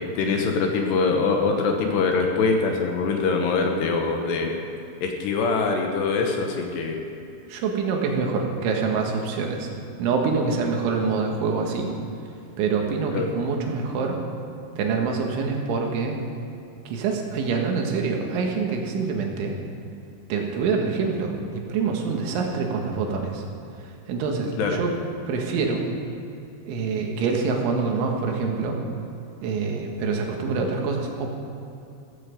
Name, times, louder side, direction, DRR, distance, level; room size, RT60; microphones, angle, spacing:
voice 1, 0.1-4.6 5.0-7.0 13.1-13.3 24.6-24.8, left 4 dB, 70° left, 3 dB, 3.0 m, -23 dB
voice 2, 7.5-9.7 10.0-11.9 12.6-14.2 14.8-16.2 16.9-19.6 20.3-23.4 23.8-24.9 25.3-25.9 26.7-28.8 29.4-31.3, right 4 dB, 80° right, 1 dB, 3.9 m, -25 dB
15.0 x 15.0 x 5.2 m, 2.7 s
omnidirectional pair, 5.6 m